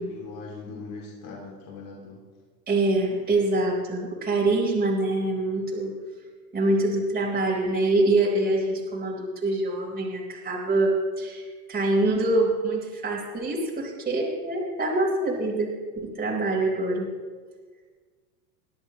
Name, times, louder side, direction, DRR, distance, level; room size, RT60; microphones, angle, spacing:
voice 1, 0.0-2.3, left 4 dB, 45° left, -2 dB, 2.7 m, -41 dB
voice 2, 2.7-5.9 6.5-17.1, right 2 dB, 20° right, -3 dB, 4.2 m, -25 dB
21.5 x 13.0 x 3.1 m, 1.5 s
supercardioid pair, 115°, 47 cm